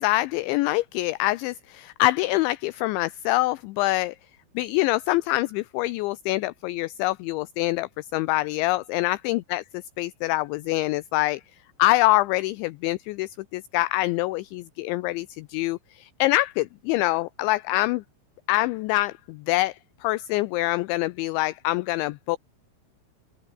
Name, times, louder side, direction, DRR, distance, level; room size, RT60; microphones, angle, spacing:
voice 1, 0.0-4.2 4.6-9.6 10.0-11.4 11.8-18.0 18.5-22.4, left 19 dB, 80° left, 2.7 m, -25 dB
open air
omnidirectional pair, 5.9 m